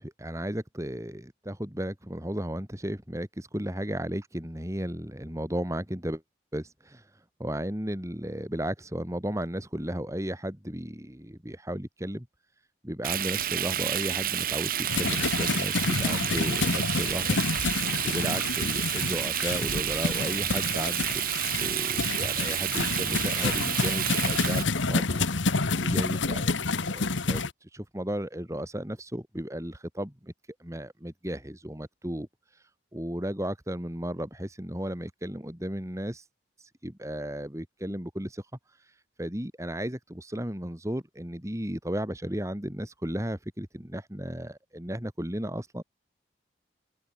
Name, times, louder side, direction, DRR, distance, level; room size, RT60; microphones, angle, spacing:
voice 1, 0.0-6.2 6.5-12.3 12.8-17.4 18.0-21.1 21.6-25.5 25.8-30.3 30.6-32.3 32.5-36.3 36.6-45.8, equal, 15° right, 2.4 m, -35 dB
Frying (food), 13.0-24.6, right 11 dB, 50° right, 1.8 m, -30 dB
sound 1, 14.9-27.5, left 3 dB, 85° left, 1.5 m, -29 dB
open air
head